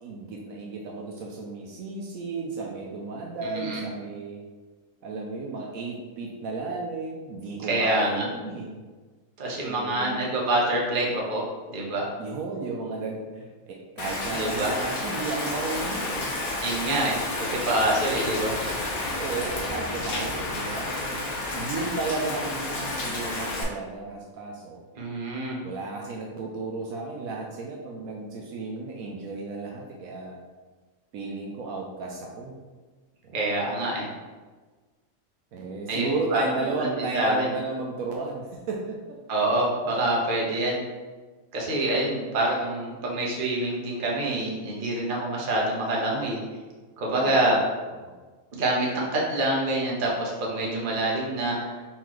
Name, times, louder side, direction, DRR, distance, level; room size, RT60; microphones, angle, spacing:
voice 1, 0.0-4.4 5.0-8.8 9.6-10.2 12.2-16.3 19.2-24.8 25.6-30.4 31.1-32.6 33.2-33.4 35.5-39.2 47.2-47.6 48.0-48.1, right 3 dB, 75° right, -1 dB, 1.0 m, -33 dB
voice 2, 3.4-3.8 7.6-8.3 9.4-11.4 11.7-12.0 14.4-14.7 16.6-18.5 25.0-25.6 33.3-34.1 35.9-36.4 36.7-37.5 39.3-40.8 41.5-46.4 47.0-47.6 48.5-51.7, right 1 dB, 40° right, -3 dB, 1.0 m, -26 dB
Rain, 14.0-23.6, left 2 dB, 75° left, 1.3 m, -31 dB
4.2 x 4.0 x 3.1 m, 1.3 s
omnidirectional pair, 1.5 m